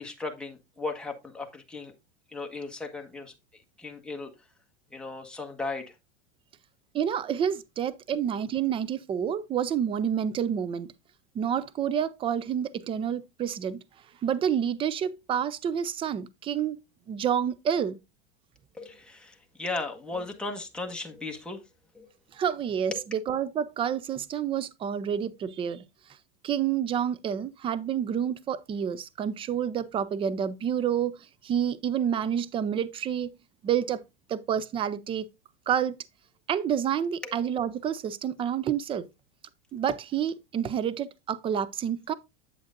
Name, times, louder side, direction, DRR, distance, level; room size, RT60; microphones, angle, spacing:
voice 1, 0.0-1.9 2.3-3.3 3.8-4.3 4.9-5.9 18.7-21.6 21.9-22.1 22.9-23.0 37.2-37.3, left 3 dB, 5° left, 1.3 m, -36 dB
voice 2, 6.9-10.9 11.3-13.8 14.2-18.0 22.3-25.8 26.4-31.2 31.4-33.3 33.6-34.0 34.3-35.3 35.7-36.0 36.5-39.1 39.7-42.1, right 8 dB, 15° right, 0.4 m, -29 dB
7.9 x 7.9 x 2.5 m
hypercardioid pair, 120°, 34 cm